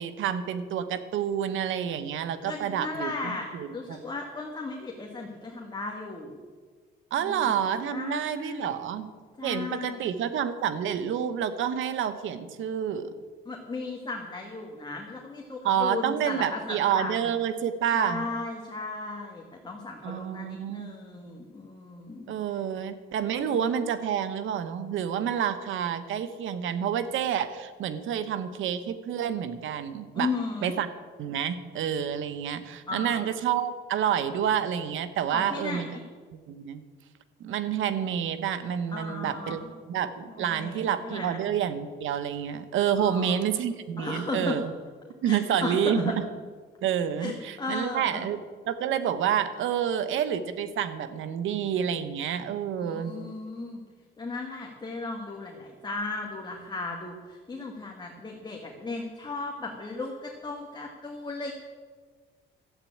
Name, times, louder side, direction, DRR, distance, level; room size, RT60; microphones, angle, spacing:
voice 1, 0.0-4.0 7.1-9.1 9.4-13.1 15.6-18.3 20.0-20.9 22.3-30.3 30.6-30.9 31.2-35.9 36.5-36.8 37.4-39.6 39.9-44.7 45.2-46.1 46.8-48.4 48.7-53.1, right 9 dB, 80° right, 11 dB, 1.1 m, -28 dB
voice 2, 2.4-6.4 7.2-7.5 7.9-8.7 9.4-10.1 13.5-17.1 17.9-22.4 23.4-23.6 30.1-30.8 32.9-33.2 35.3-36.0 38.9-39.7 40.3-41.4 43.0-43.4 44.0-44.6 45.2-46.2 47.2-48.2 52.8-53.8 54.2-61.5, left 3 dB, 20° left, 0 dB, 1.9 m, -36 dB
12.5 x 8.3 x 8.7 m, 1.5 s
cardioid pair, 90°, 20 cm